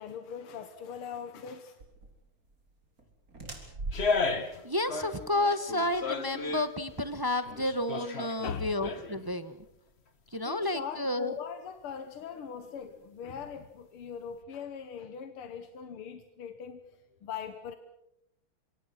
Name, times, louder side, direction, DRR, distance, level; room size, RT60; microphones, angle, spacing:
voice 1, 0.0-1.8 8.4-8.7 10.4-16.8 17.2-17.8, left 7 dB, 90° left, 9 dB, 2.2 m, -40 dB
sound 1, 1.8-7.9, right 2 dB, 40° right, 4.5 m, -45 dB
sound 2, 3.9-4.6 4.9-6.7 7.2-9.3 9.6-9.7, left 4 dB, 35° left, 1.6 m, -33 dB
voice 2, 4.6-9.6 10.3-11.3, left 1 dB, 20° right, 11 dB, 0.5 m, -31 dB
26.0 x 25.5 x 6.0 m, 0.82 s
omnidirectional pair, 2.4 m